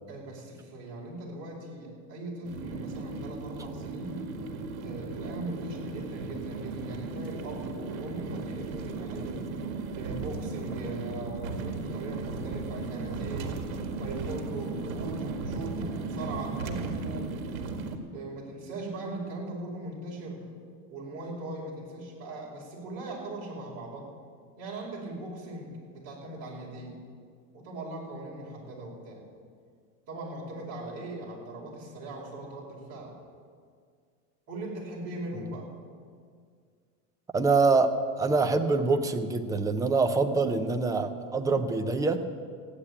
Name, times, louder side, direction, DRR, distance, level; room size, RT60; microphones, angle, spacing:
voice 1, 0.1-4.2 4.8-9.5 10.0-13.6 14.0-17.3 18.1-20.4 20.9-24.1 24.6-27.0 27.5-29.2 30.1-33.1 34.5-35.7, right 2 dB, 35° right, -3 dB, 5.0 m, -39 dB
sound 1, 2.4-18.0, right 3 dB, 80° right, 2.0 m, -36 dB
voice 2, 37.3-42.2, right 3 dB, 10° right, 8 dB, 0.4 m, -25 dB
15.0 x 9.9 x 8.6 m, 2.1 s
supercardioid pair, 150°, 40 cm